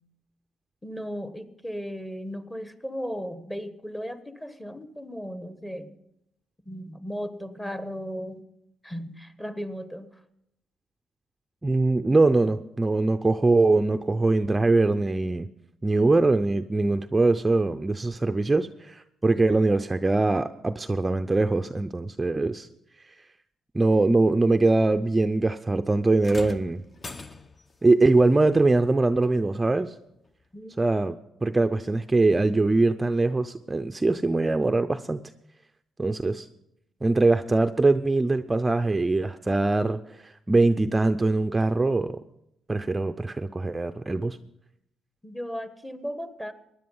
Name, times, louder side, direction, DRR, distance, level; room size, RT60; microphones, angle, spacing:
voice 1, 0.8-6.0 6.6-8.5 8.8-10.2 30.5-30.7 45.2-46.5, equal, 10° left, 11 dB, 1.2 m, -36 dB
voice 2, 11.6-15.5 15.8-22.7 23.7-26.8 27.8-29.9 30.8-31.1 31.4-35.2 36.0-36.5 37.0-42.2 42.7-44.4, right 2 dB, 20° right, 8 dB, 0.5 m, -22 dB
sound 1, 26.2-27.8 29.2-29.4 30.3-30.4, left 3 dB, 30° left, 0.7 m, -41 dB
15.5 x 10.5 x 5.5 m, 0.80 s
cardioid pair, 90°, 0 cm